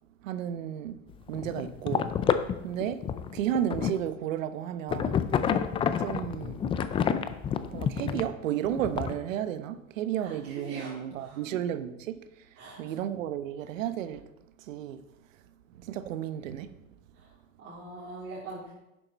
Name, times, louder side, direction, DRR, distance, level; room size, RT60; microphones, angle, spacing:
voice 1, 0.2-0.9 1.3-2.1 2.6-3.0 3.3-5.2 6.0-6.6 7.7-12.3 12.8-14.2 14.7-15.0 15.8-16.7, right 10 dB, 75° right, 1.0 m, -32 dB
sound 1, 1.1-4.1 4.9-8.3 8.7-9.1, left 8 dB, 15° left, 0.3 m, -29 dB
voice 2, 10.2-11.6 12.6-12.9 17.1-17.3 17.6-18.7, right 3 dB, 35° right, 3.2 m, -43 dB
11.0 x 7.5 x 4.1 m
hypercardioid pair, 120°, 39 cm